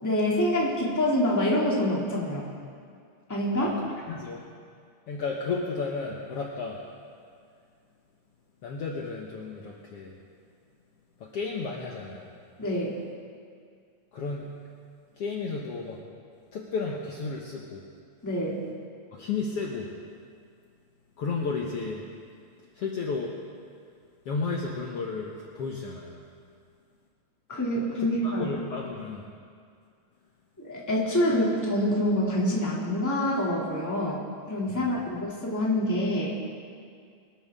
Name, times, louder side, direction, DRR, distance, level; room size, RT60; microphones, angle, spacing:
voice 1, 0.0-2.5 3.3-3.8 12.6-13.0 18.2-18.6 27.5-28.4 30.6-34.2 34.5-36.3, left 1 dB, 5° left, -4 dB, 2.1 m, -26 dB
voice 2, 4.1-4.4 5.1-6.8 8.6-10.1 11.2-12.3 14.1-14.5 15.2-16.0 16.5-17.8 19.1-19.9 21.2-22.0 22.7-23.4 24.3-26.2 28.0-29.3 34.7-35.0, left 4 dB, 60° left, -2 dB, 1.8 m, -33 dB
24.0 x 12.5 x 3.6 m, 2.2 s
omnidirectional pair, 3.6 m